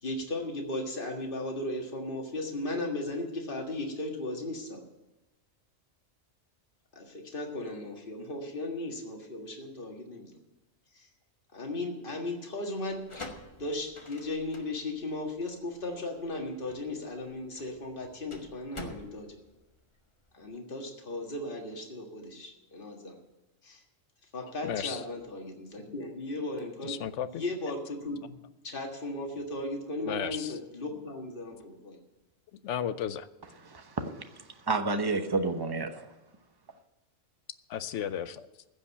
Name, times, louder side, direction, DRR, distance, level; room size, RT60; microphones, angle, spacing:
voice 1, 0.0-4.8 6.9-10.3 10.9-11.1 11.5-13.0 13.6-19.4 20.3-23.1 23.6-23.8 24.3-27.0 27.3-28.4 28.6-32.0, left 2 dB, 45° left, 2.0 m, -36 dB
sound 1, 12.9-20.4, left 2 dB, 25° left, 1.3 m, -47 dB
voice 2, 24.6-25.0 26.8-27.4 30.1-30.5 32.6-33.3 37.7-38.5, left 9 dB, 70° left, 1.0 m, -34 dB
voice 3, 33.6-36.1, right 3 dB, 20° right, 0.9 m, -31 dB
15.5 x 5.4 x 8.6 m
omnidirectional pair, 1.3 m